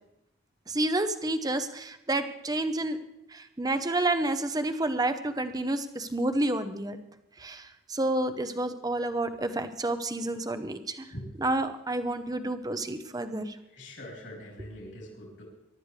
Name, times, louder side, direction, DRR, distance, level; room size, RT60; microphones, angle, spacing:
voice 1, 0.7-3.0 3.3-7.0 7.4-11.1 11.4-13.6, right 2 dB, 20° right, 9 dB, 0.8 m, -29 dB
voice 2, 11.1-11.4 13.6-15.4, equal, 70° left, -3 dB, 3.8 m, -43 dB
23.0 x 12.0 x 3.3 m, 0.85 s
head